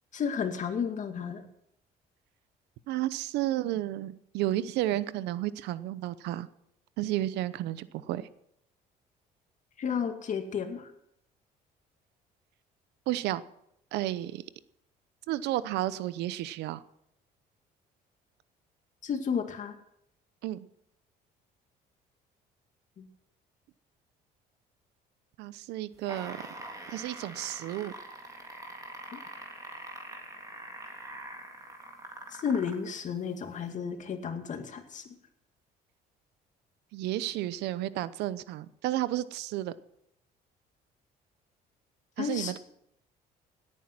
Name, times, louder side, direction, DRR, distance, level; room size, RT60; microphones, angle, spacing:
voice 1, 0.1-1.4 9.8-10.9 19.0-19.8 23.0-23.1 29.1-29.2 32.3-35.0 42.2-42.5, left 6 dB, 45° left, 6 dB, 2.3 m, -32 dB
voice 2, 2.9-6.5 7.0-8.3 13.1-13.4 13.9-14.4 15.3-16.8 20.4-20.7 25.4-26.4 26.9-27.9 36.9-39.7 42.2-42.6, right 14 dB, 85° right, 16 dB, 0.8 m, -32 dB
sound 1, 25.9-32.9 33.7-33.8, right 2 dB, 20° right, 3.5 m, -44 dB
18.0 x 9.3 x 6.0 m, 0.76 s
cardioid pair, 110°, 17 cm